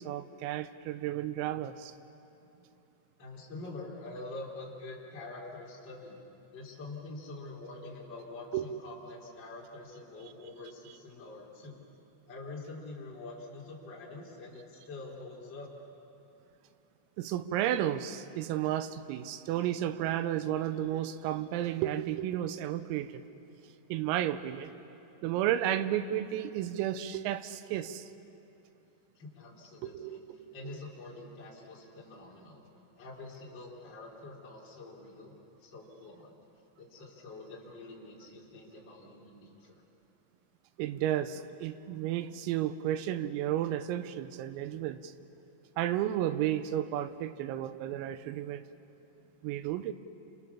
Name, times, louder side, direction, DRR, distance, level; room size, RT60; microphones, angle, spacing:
voice 1, 0.0-1.9 8.5-8.7 17.2-23.2 23.9-24.7 25.2-28.1 29.8-30.2 30.6-30.7 40.8-45.1 45.8-48.6 49.4-49.9, right 12 dB, 90° right, 12 dB, 3.6 m, -32 dB
voice 2, 3.2-6.2 6.5-11.9 12.2-15.7 29.2-30.2 30.5-32.6 33.0-35.3 35.6-36.4 36.8-39.8, left 2 dB, 25° left, -4 dB, 3.9 m, -46 dB
29.5 x 27.0 x 7.1 m, 2.9 s
omnidirectional pair, 6.0 m